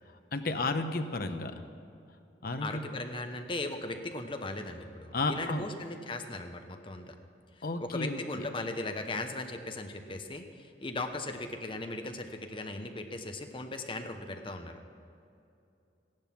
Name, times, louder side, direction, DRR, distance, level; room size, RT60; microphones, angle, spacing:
voice 1, 0.3-1.5 2.4-2.8 5.1-5.7 7.6-8.5, left 2 dB, 55° left, 7 dB, 0.9 m, -32 dB
voice 2, 2.6-7.1 7.8-14.8, left 2 dB, 30° left, 6 dB, 0.9 m, -38 dB
15.5 x 11.0 x 6.0 m, 2.7 s
head